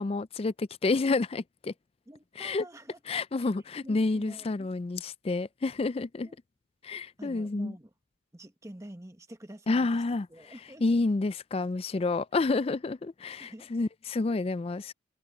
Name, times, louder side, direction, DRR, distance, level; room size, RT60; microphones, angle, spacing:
voice 1, 0.0-1.7 2.4-2.6 3.1-6.3 6.8-7.7 9.7-10.3 10.8-14.9, left 3 dB, 30° left, 0.3 m, -29 dB
voice 2, 2.1-3.0 3.4-3.5 3.8-4.7 6.2-6.4 7.2-7.9 8.3-10.0 10.3-11.0 13.4-13.7, right 1 dB, 15° right, 1.3 m, -48 dB
head